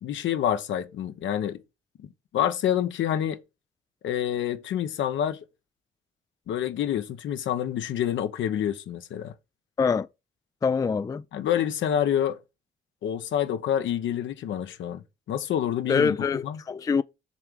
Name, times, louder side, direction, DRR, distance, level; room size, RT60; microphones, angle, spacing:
voice 1, 0.0-1.6 2.3-3.4 4.0-5.4 6.5-9.3 11.3-12.4 13.0-16.2 16.4-16.6, left 10 dB, 75° left, 1.0 m, -27 dB
voice 2, 10.6-11.2 15.9-17.0, left 5 dB, 20° left, 0.3 m, -24 dB
7.3 x 3.5 x 6.4 m
cardioid pair, 90°, 20 cm